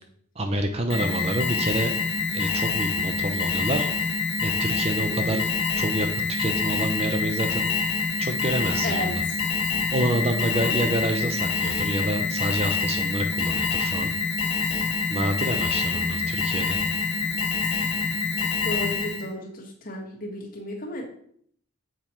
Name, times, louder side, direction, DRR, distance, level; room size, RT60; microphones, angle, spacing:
voice 1, 0.4-1.9 2.3-3.9 4.4-5.5 5.7-7.7 8.2-9.2 9.9-14.1 15.1-16.8, right 1 dB, 30° right, 6 dB, 0.5 m, -28 dB
Alarm, 0.9-19.3, left 4 dB, 70° left, 1.3 m, -26 dB
voice 2, 5.0-5.5 8.8-9.1 10.5-10.9 18.6-21.0, left 1 dB, 40° left, -1 dB, 1.5 m, -34 dB
7.1 x 4.3 x 4.4 m, 0.64 s
head